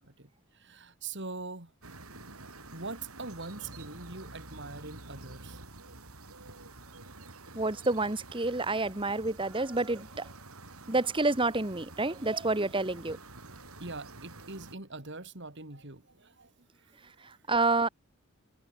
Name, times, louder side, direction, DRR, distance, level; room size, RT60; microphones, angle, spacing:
voice 1, 0.0-1.7 2.7-5.6 7.0-7.2 13.8-17.4, right 3 dB, 55° right, 3.6 m, -43 dB
sound 1, 1.8-14.8, right 2 dB, 80° right, 6.2 m, -49 dB
voice 2, 7.5-10.3 10.9-13.2 17.2-17.9, right 2 dB, 25° right, 1.8 m, -29 dB
head